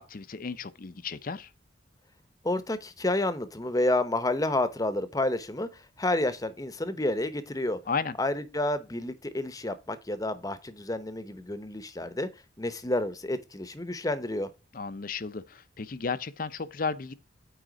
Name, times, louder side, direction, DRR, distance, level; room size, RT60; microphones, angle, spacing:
voice 1, 0.0-1.5 7.9-8.2 14.7-17.1, left 5 dB, 45° left, 0.6 m, -34 dB
voice 2, 2.4-7.8 8.2-12.3 12.6-14.5, left 1 dB, 20° left, 0.8 m, -30 dB
9.1 x 3.7 x 4.8 m
head